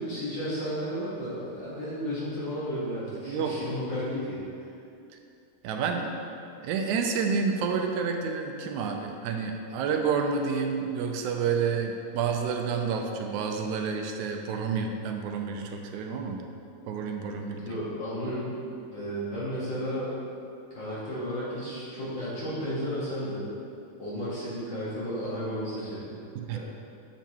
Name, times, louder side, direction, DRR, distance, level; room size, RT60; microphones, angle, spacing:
voice 1, 0.0-4.7 17.5-18.5 18.9-20.2 20.7-23.5 24.0-26.2 26.5-26.6, equal, 50° left, -9 dB, 1.7 m, -33 dB
voice 2, 3.2-3.6 5.6-6.2 6.6-16.4 16.9-17.6 26.4-26.6, right 5 dB, 85° right, 3 dB, 1.9 m, -29 dB
8.1 x 7.0 x 2.9 m, 2.6 s
omnidirectional pair, 3.4 m